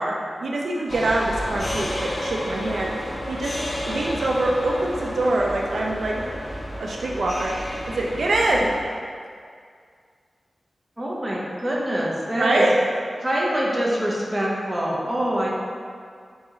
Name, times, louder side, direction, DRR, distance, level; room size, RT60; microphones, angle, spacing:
voice 1, 0.0-2.9 3.3-3.6 3.9-6.3 6.8-9.0 12.4-12.7, right 2 dB, 80° right, -2 dB, 0.4 m, -24 dB
sound 1, 0.9-8.8, equal, 35° left, 0.5 m, -31 dB
voice 2, 11.0-12.6 13.2-15.5, equal, 25° right, -4 dB, 0.7 m, -25 dB
4.0 x 2.9 x 3.6 m, 2.1 s
wide cardioid pair, 120°, 0 cm